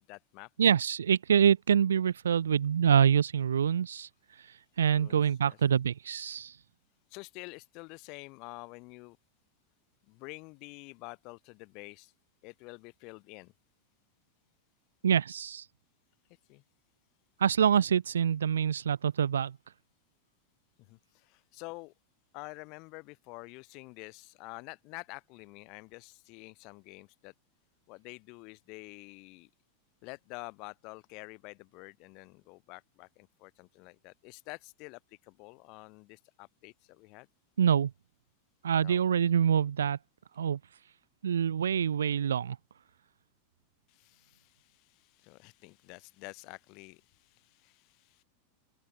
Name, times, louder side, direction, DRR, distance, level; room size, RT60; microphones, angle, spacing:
voice 1, 0.0-0.5 4.9-5.6 7.1-9.2 10.1-12.1 12.4-13.5 16.5-16.6 20.9-21.9 22.3-27.3 27.9-29.5 30.0-37.3 38.8-39.0 43.9-48.2, left 28 dB, 45° left, 4.9 m, -48 dB
voice 2, 0.6-4.1 4.4-6.6 15.0-15.7 17.4-19.6 37.6-37.9 38.6-40.0 40.4-40.6 41.2-42.6, right 8 dB, 65° right, 0.5 m, -26 dB
open air
figure-of-eight pair, 90°, 0 cm